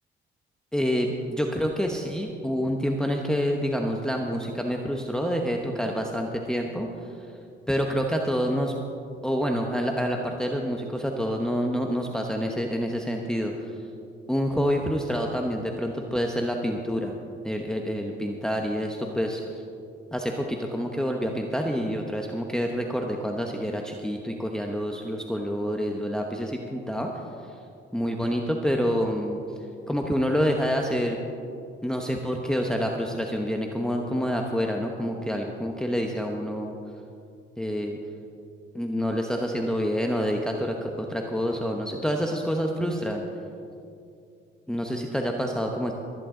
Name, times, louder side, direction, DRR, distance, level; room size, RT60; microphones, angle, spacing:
voice 1, 0.7-7.2 7.7-8.7 9.2-13.7 14.3-17.1 17.4-19.4 20.1-27.1 27.9-29.4 29.9-31.2 31.8-36.8 37.6-38.0 38.7-43.2 44.7-45.9, equal, 5° left, 1 dB, 1.0 m, -27 dB
20.5 x 10.5 x 3.8 m, 2.5 s
cardioid pair, 90°, 20 cm